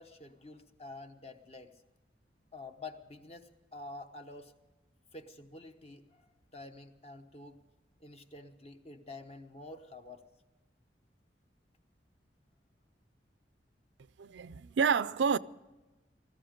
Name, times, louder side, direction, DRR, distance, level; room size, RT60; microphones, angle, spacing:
voice 1, 0.0-1.8 2.5-4.5 5.1-7.6 8.0-10.3, left 2 dB, 35° left, 1.1 m, -48 dB
voice 2, 14.2-15.4, right 6 dB, 85° right, 0.4 m, -29 dB
19.5 x 14.5 x 5.2 m
head